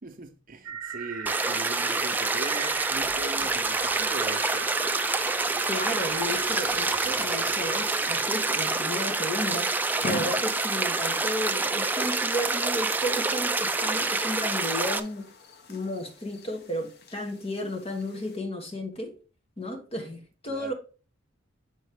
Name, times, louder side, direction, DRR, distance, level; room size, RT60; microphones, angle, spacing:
voice 1, 0.0-4.8 20.5-20.7, right 2 dB, 45° right, 0.8 m, -40 dB
sound 1, 0.6-8.8, right 7 dB, 75° right, 0.6 m, -38 dB
sound 2, 1.3-15.0, right 3 dB, 10° right, 0.3 m, -27 dB
sound 3, 3.9-18.4, left 3 dB, 55° left, 0.8 m, -45 dB
voice 2, 5.7-15.3 15.7-19.2 19.6-20.7, left 1 dB, 30° left, 1.2 m, -33 dB
7.5 x 4.1 x 3.5 m
head